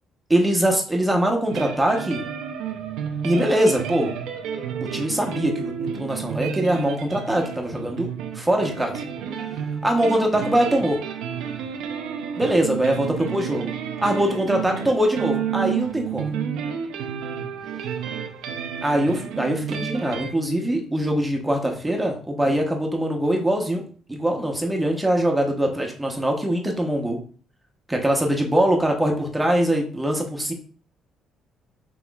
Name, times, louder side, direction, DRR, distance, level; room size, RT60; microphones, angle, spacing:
voice 1, 0.3-2.3 3.2-4.1 4.8-9.0 9.8-11.0 12.4-13.7 14.0-16.3 18.8-23.8 24.1-27.2 27.9-30.5, right 1 dB, 10° right, 1 dB, 0.9 m, -22 dB
sound 1, 1.5-20.3, right 7 dB, 85° right, 0.6 m, -31 dB
5.7 x 3.1 x 2.4 m, 0.40 s
cardioid pair, 95°, 0 cm